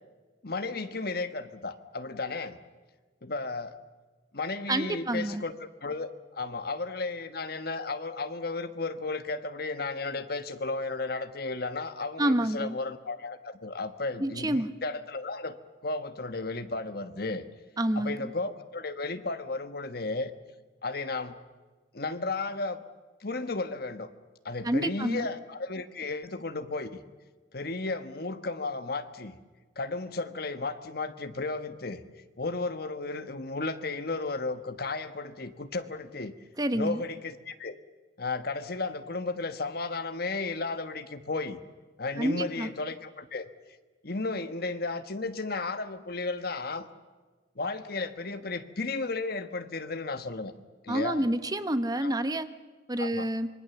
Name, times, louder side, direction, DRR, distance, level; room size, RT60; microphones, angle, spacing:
voice 1, 0.4-2.6 3.2-3.8 4.3-15.6 15.8-17.4 17.9-20.3 20.8-21.4 21.9-22.8 23.2-24.1 24.4-27.0 27.5-29.4 29.8-32.0 32.4-36.3 36.7-37.8 38.2-41.6 42.0-43.5 44.0-46.9 47.5-50.5 50.8-51.2 52.0-52.1 53.0-53.3, left 3 dB, 55° left, 10 dB, 1.3 m, -34 dB
voice 2, 4.7-5.4 12.2-12.8 14.2-14.7 17.8-18.3 24.6-25.3 36.6-37.0 42.2-42.7 50.9-52.5 52.9-53.5, right 1 dB, 20° right, 11 dB, 0.9 m, -28 dB
26.0 x 23.5 x 7.0 m, 1.3 s
head